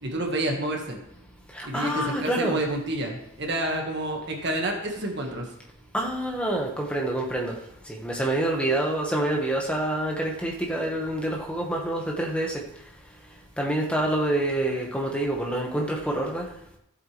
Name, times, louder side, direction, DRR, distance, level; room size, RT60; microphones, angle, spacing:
voice 1, 0.0-1.0 1.6-5.5, right 1 dB, 50° right, 1 dB, 1.7 m, -29 dB
voice 2, 1.5-2.6 5.9-7.5 7.9-12.6 13.6-16.5, right 1 dB, 5° left, -1 dB, 1.5 m, -27 dB
14.5 x 8.2 x 3.4 m, 0.82 s
head